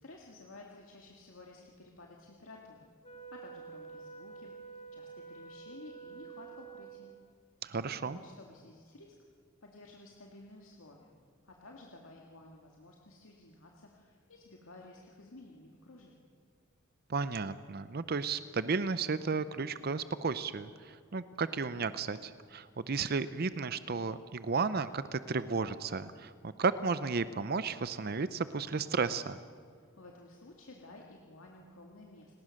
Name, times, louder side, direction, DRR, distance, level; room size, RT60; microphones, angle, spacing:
voice 1, 0.0-2.9 3.3-7.1 8.0-9.1 9.6-16.3 29.7-32.4, left 2 dB, 85° left, 0 dB, 2.1 m, -53 dB
Wind instrument woodwind instrument, 3.0-7.4, right 5 dB, 30° left, 1.2 m, -49 dB
voice 2, 7.6-8.2 17.1-29.4, right 4 dB, 50° right, 13 dB, 0.6 m, -33 dB
29.5 x 19.0 x 6.5 m, 2.1 s
head